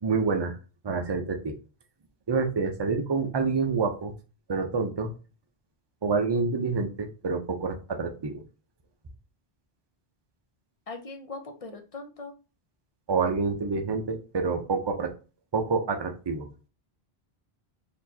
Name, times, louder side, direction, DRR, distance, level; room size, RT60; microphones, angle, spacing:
voice 1, 0.0-0.6 0.8-1.6 2.3-4.1 4.5-5.1 6.0-8.4 13.1-15.1 15.5-16.5, right 4 dB, 30° right, 5 dB, 0.6 m, -27 dB
voice 2, 10.9-12.4 13.2-13.4, left 3 dB, 40° left, 6 dB, 0.6 m, -40 dB
4.2 x 3.0 x 2.8 m, 0.33 s
omnidirectional pair, 1.1 m